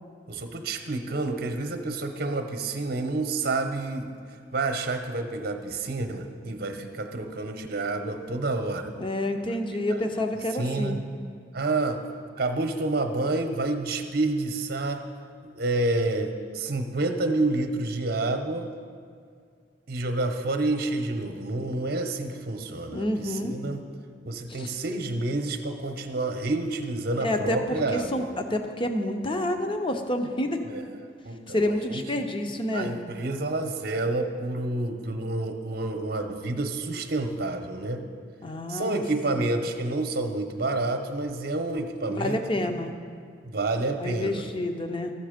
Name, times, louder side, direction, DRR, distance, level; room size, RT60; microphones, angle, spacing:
voice 1, 0.3-4.1 4.5-8.9 9.9-10.1 10.6-11.0 11.5-12.0 12.4-15.0 15.4-18.7 19.9-23.8 24.3-28.3 30.7-30.8 31.2-32.0 32.7-38.1 38.7-42.8 43.4-44.5, right 2 dB, 60° right, 6 dB, 0.8 m, -29 dB
voice 2, 9.0-11.0 22.9-23.5 24.5-24.7 27.2-30.6 31.5-32.9 38.4-39.0 42.1-42.9 44.0-45.1, left 1 dB, 30° left, 5 dB, 0.7 m, -28 dB
12.5 x 7.1 x 5.1 m, 2.2 s
head